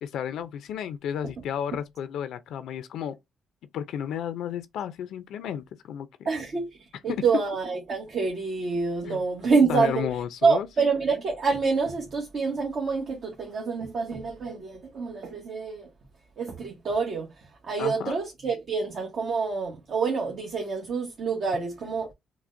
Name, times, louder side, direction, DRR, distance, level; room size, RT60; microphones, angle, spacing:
voice 1, 0.0-3.2 3.7-6.3 9.1-9.2 9.7-10.7 17.8-18.1, left 9 dB, 80° left, 0.4 m, -32 dB
voice 2, 6.2-6.8 7.0-10.1 10.4-15.9 16.4-17.3 17.7-22.1, right 4 dB, 55° right, 1.0 m, -27 dB
5.9 x 2.1 x 2.5 m
cardioid pair, 90°, 0 cm